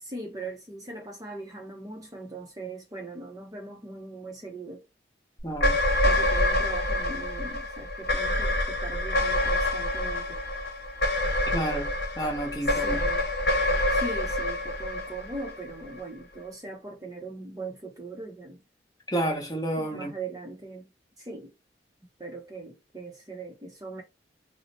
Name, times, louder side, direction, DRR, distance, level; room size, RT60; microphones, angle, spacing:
voice 1, 0.0-4.9 6.0-10.4 12.7-13.3 13.9-18.6 19.8-20.9 21.2-21.5 22.2-24.0, right 2 dB, 20° right, 0.6 m, -40 dB
voice 2, 5.4-5.8 11.5-11.9 12.2-13.1 19.1-20.1, right 1 dB, 20° left, 0.9 m, -30 dB
sound 1, 5.5-16.0, left 1 dB, 60° left, 1.1 m, -27 dB
2.7 x 2.0 x 4.0 m
head